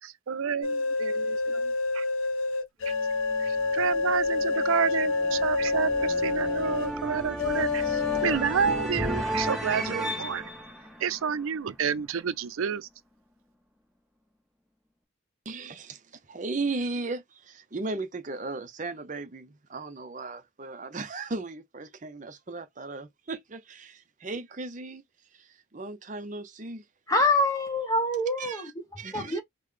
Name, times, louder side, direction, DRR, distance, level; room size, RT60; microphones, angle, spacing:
voice 1, 0.0-2.0 2.8-2.9 3.4-10.5 11.0-12.9, right 7 dB, 90° right, 0.5 m, -30 dB
sound 1, 0.6-6.9 7.4-8.4, left 3 dB, 85° left, 0.7 m, -28 dB
sound 2, 2.8-11.9, equal, ahead, 1.2 m, -35 dB
voice 2, 15.5-25.0 25.3-26.9 28.4-28.7 29.0-29.4, right 3 dB, 40° right, 0.6 m, -36 dB
voice 3, 27.1-28.7 29.1-29.4, left 2 dB, 15° left, 0.8 m, -25 dB
3.8 x 2.2 x 3.2 m
head